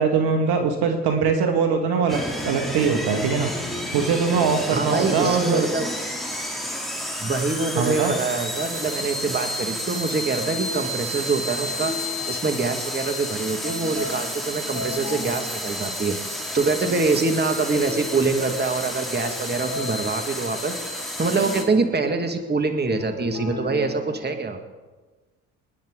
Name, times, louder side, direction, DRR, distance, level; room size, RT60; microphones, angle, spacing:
voice 1, 0.0-3.5 3.9-5.7 7.8-8.1, right 5 dB, 60° right, 4 dB, 1.9 m, -22 dB
sound 1, 2.1-21.6, equal, ahead, 3.1 m, -31 dB
voice 2, 4.7-5.9 7.2-11.9 12.3-24.6, right 3 dB, 25° right, 5 dB, 2.0 m, -25 dB
sound 2, 4.9-6.3 7.2-13.0 13.5-20.8 21.2-24.4, left 4 dB, 40° left, 4.3 m, -38 dB
26.0 x 10.0 x 3.9 m, 1.3 s
hypercardioid pair, 60°, 43 cm